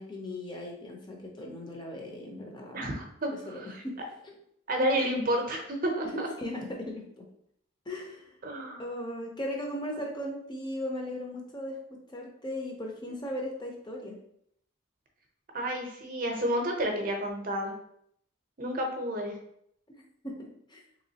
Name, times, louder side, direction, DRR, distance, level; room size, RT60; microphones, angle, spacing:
voice 1, 0.0-2.9 3.3-3.9 4.2-4.3 6.4-7.2 7.9-8.3 8.8-11.8 12.1-14.2 20.2-20.8, left 1 dB, 20° left, 0 dB, 0.5 m, -37 dB
voice 2, 2.7-3.8 4.7-6.3 8.4-8.8 13.1-13.3 15.5-17.7 18.6-19.3, equal, 40° right, 2 dB, 0.6 m, -30 dB
3.4 x 3.0 x 2.8 m, 0.71 s
head